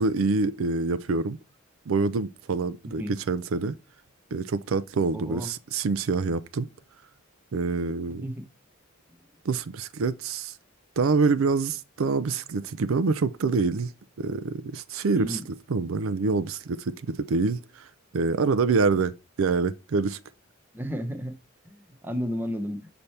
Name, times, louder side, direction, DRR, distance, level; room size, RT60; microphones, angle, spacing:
voice 1, 0.0-1.4 1.9-3.0 3.3-3.7 4.3-6.7 7.5-8.2 9.4-10.6 11.0-13.9 14.2-15.4 15.7-17.9 18.1-20.2, right 4 dB, 75° right, 0.5 m, -26 dB
voice 2, 5.1-5.5 8.1-8.4 9.1-9.2 15.1-15.4 20.7-21.4 21.6-22.9, equal, 10° right, 0.9 m, -33 dB
6.8 x 4.2 x 3.3 m
head